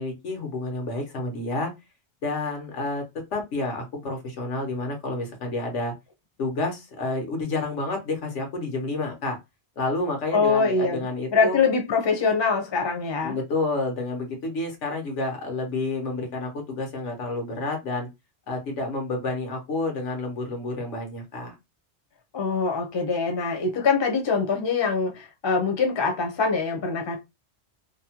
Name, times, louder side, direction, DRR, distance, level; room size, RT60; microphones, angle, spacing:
voice 1, 0.0-1.7 2.2-3.0 3.3-5.9 6.4-9.4 9.8-11.6 13.2-18.1 18.5-21.6, left 2 dB, 90° left, 1.3 m, -29 dB
voice 2, 10.3-11.0 11.3-13.4 22.3-27.2, left 4 dB, 30° left, 0.6 m, -23 dB
2.9 x 2.1 x 2.8 m
omnidirectional pair, 1.2 m